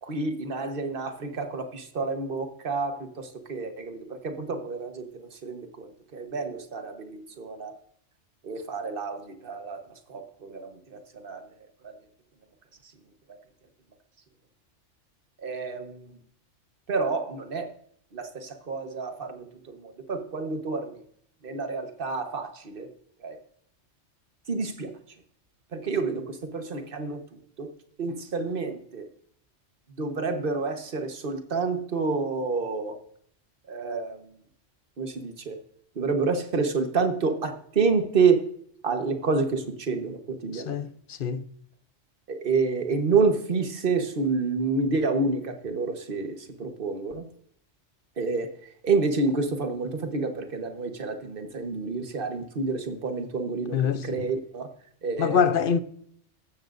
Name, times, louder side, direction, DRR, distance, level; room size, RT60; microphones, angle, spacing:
voice 1, 0.0-5.1 5.4-5.9 6.1-7.7 8.4-9.8 10.1-11.4 11.8-11.9 15.4-16.0 16.9-17.7 18.1-21.0 21.4-22.9 23.2-23.4 24.5-24.9 25.7-27.2 27.6-27.7 28.0-29.1 30.0-32.9 33.7-34.2 35.0-35.6 36.0-38.4 38.8-40.7 42.3-47.2 48.2-48.5 48.8-54.7 55.0-55.4, right 4 dB, 50° right, 1.4 m, -28 dB
voice 2, 40.5-41.4 53.7-54.3 55.2-55.8, left 7 dB, 55° left, 0.8 m, -25 dB
15.0 x 13.0 x 2.6 m
omnidirectional pair, 1.2 m